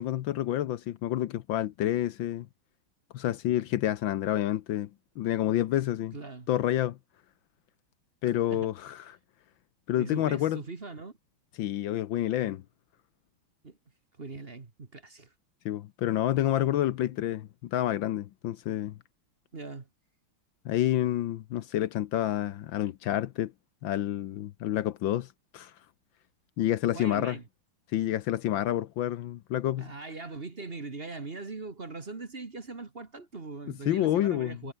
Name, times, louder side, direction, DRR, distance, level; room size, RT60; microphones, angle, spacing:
voice 1, 0.0-2.5 3.1-4.9 5.2-6.1 6.5-7.0 8.2-9.0 9.9-10.6 11.6-12.6 15.6-19.0 20.6-23.5 23.8-25.3 25.5-25.7 26.6-27.4 27.9-29.9 33.9-34.6, left 12 dB, 70° left, 1.4 m, -28 dB
voice 2, 6.1-6.5 8.5-8.7 10.0-11.1 13.6-13.8 14.2-15.3 19.5-19.9 26.9-27.4 29.8-34.7, right 3 dB, 30° right, 1.7 m, -40 dB
omnidirectional pair, 2.3 m